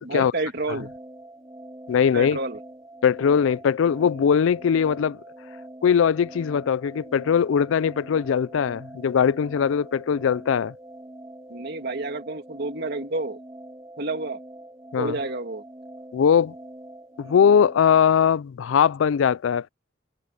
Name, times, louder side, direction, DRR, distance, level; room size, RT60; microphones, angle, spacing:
voice 1, 0.0-0.9 2.1-2.6 11.5-13.4 14.0-14.4 15.0-15.6, right 2 dB, 55° right, 2.3 m, -29 dB
sound 1, 0.7-18.0, right 1 dB, 15° right, 6.3 m, -44 dB
voice 2, 1.9-2.4 3.0-5.2 5.8-10.7 14.9-15.2 16.1-16.5 17.2-19.7, left 7 dB, 75° left, 0.4 m, -20 dB
head